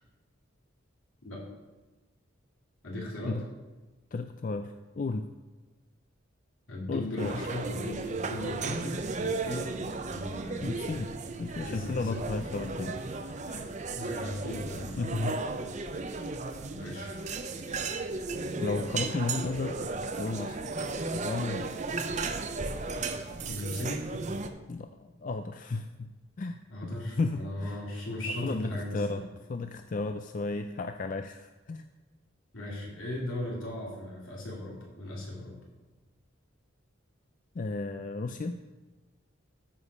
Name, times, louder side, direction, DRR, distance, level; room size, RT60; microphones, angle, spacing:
voice 1, 2.8-3.4 6.7-9.8 10.1-11.1 11.5-12.2 14.0-15.1 16.8-17.1 18.5-18.7 23.5-24.1 26.7-29.2 32.5-35.6, left 1 dB, 75° left, -3 dB, 2.9 m, -37 dB
voice 2, 4.1-5.3 6.9-7.3 10.6-11.1 11.4-13.0 13.5-13.7 15.0-15.4 18.6-19.8 20.2-20.6 21.1-21.7 24.7-26.1 26.4-27.8 28.3-29.2 29.5-31.8 37.6-38.6, left 3 dB, 40° left, 8 dB, 0.4 m, -34 dB
sound 1, 7.2-24.5, right 3 dB, 35° right, 0.6 m, -35 dB
13.5 x 5.0 x 5.4 m, 1.2 s
head